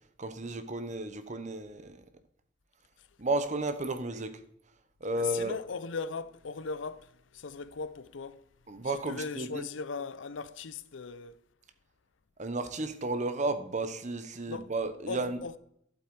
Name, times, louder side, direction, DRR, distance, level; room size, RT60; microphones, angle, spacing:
voice 1, 0.2-2.0 3.2-4.4 5.0-5.5 8.7-9.7 12.4-15.4, right 2 dB, 40° right, 1.0 m, -33 dB
voice 2, 5.1-8.4 8.8-11.4 14.5-14.7 15.1-15.6, left 5 dB, 75° left, 0.6 m, -38 dB
12.0 x 7.9 x 4.7 m
head